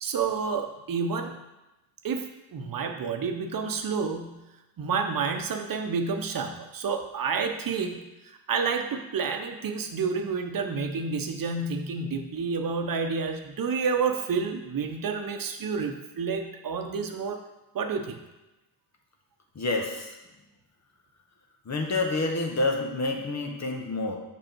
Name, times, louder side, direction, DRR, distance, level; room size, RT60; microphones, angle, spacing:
voice 1, 0.0-1.4 2.0-4.4 4.8-17.4 17.7-18.2, right 5 dB, 55° right, 5 dB, 0.9 m, -29 dB
voice 2, 19.5-20.1 21.7-24.2, left 2 dB, 40° left, 2 dB, 1.3 m, -28 dB
5.4 x 5.1 x 4.5 m, 1.0 s
supercardioid pair, 60°, 41 cm